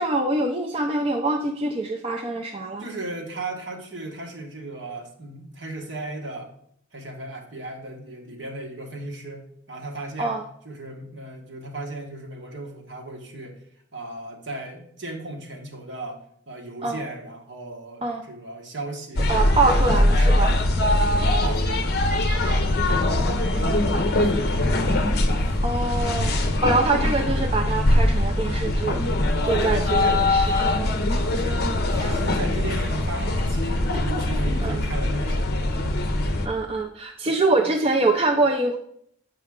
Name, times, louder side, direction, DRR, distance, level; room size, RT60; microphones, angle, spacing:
voice 1, 0.0-2.8 10.2-10.4 16.8-17.0 18.0-18.3 19.3-20.5 25.6-26.3 26.6-29.0 29.4-30.5 30.7-30.9 34.6-34.8 36.4-38.8, right 2 dB, 25° right, 2 dB, 0.4 m, -24 dB
voice 2, 2.8-6.5 6.9-9.4 9.7-10.3 10.6-13.6 13.9-16.2 16.5-20.5 20.9-24.4 29.5-30.8 31.3-31.6 31.9-35.8, right 2 dB, 55° right, 1 dB, 1.3 m, -36 dB
sound 1, 19.2-36.5, left 1 dB, 50° left, 0.7 m, -22 dB
7.5 x 5.5 x 3.6 m, 0.67 s
head